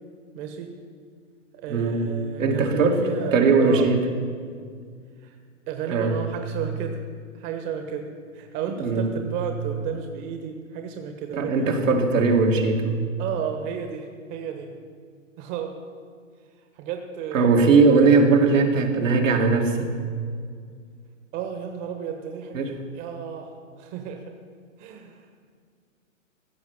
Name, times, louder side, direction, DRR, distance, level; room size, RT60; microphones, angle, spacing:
voice 1, 0.3-0.7 1.5-3.9 5.2-5.4 5.7-7.0 7.3-11.7 13.2-14.7 15.4-15.7 16.7-17.7 21.3-22.6 22.9-23.5 23.8-24.3 24.8-25.2, right 7 dB, 35° right, 5 dB, 1.4 m, -33 dB
voice 2, 1.7-2.1 2.4-4.0 5.9-6.2 8.8-9.1 11.3-13.0 17.3-19.9 22.5-22.8, right 4 dB, 70° right, 2 dB, 2.3 m, -19 dB
15.5 x 6.8 x 9.6 m, 2.1 s
hypercardioid pair, 130°, 40 cm